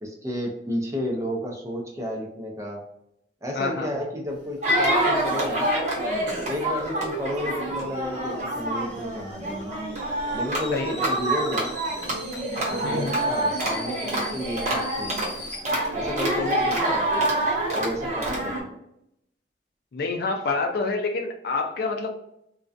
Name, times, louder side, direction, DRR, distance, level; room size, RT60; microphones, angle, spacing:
voice 1, 0.0-2.8 3.4-5.7 6.4-9.8 10.3-11.7 12.6-15.2 15.9-18.8, equal, 15° right, 0 dB, 0.5 m, -32 dB
voice 2, 3.5-3.9 10.7-10.9 12.8-13.1 16.3-16.5 19.9-22.1, left 3 dB, 60° left, 3 dB, 0.4 m, -27 dB
sound 1, 4.3-15.6, equal, 5° left, 0.9 m, -42 dB
sound 2, 4.6-18.6, right 1 dB, 40° right, 0.8 m, -26 dB
2.4 x 2.2 x 2.5 m, 0.77 s
head